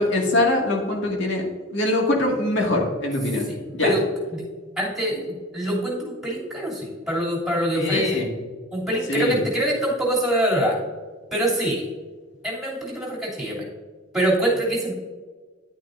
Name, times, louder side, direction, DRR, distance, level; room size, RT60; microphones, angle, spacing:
voice 1, 0.0-1.5 1.7-3.5 3.7-3.9 7.7-8.3 9.1-9.4, left 2 dB, 60° left, 0 dB, 2.1 m, -22 dB
voice 2, 3.5-4.0 4.3-4.4 4.8-8.2 8.7-10.8 11.3-11.8 12.4-13.7 14.1-14.9, right 1 dB, ahead, -5 dB, 2.9 m, -24 dB
10.5 x 9.1 x 2.6 m, 1.4 s
head